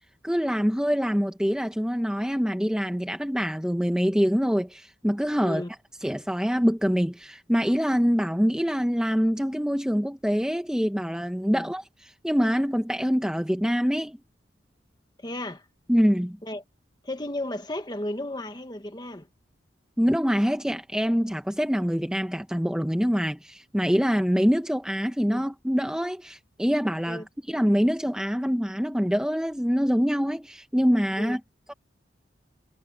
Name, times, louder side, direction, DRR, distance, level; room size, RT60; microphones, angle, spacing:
voice 1, 0.2-5.6 6.0-11.8 12.2-14.2 15.9-16.4 20.0-31.4 31.7-31.8, equal, 5° right, 0.9 m, -25 dB
voice 2, 15.2-15.6 16.4-16.6 17.0-19.3 25.3-25.4 27.1-27.3 31.2-31.4, left 1 dB, 20° left, 1.4 m, -34 dB
head